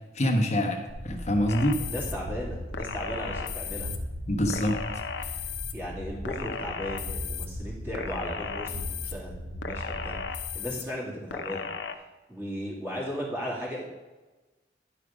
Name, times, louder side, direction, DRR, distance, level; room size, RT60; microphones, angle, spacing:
voice 1, 0.1-1.8 4.3-4.8, equal, 40° left, 2 dB, 1.2 m, -25 dB
sound 1, 0.9-10.6, equal, 50° right, 1.3 m, -38 dB
sound 2, 1.5-2.1 2.7-4.0 4.5-5.7 6.2-7.5 7.9-9.1 9.6-10.8 11.3-11.9, left 6 dB, 90° left, 0.7 m, -36 dB
voice 2, 1.8-3.9 5.7-11.7 12.3-13.8, equal, 15° right, -5 dB, 2.6 m, -36 dB
10.5 x 5.0 x 5.1 m, 1.2 s
head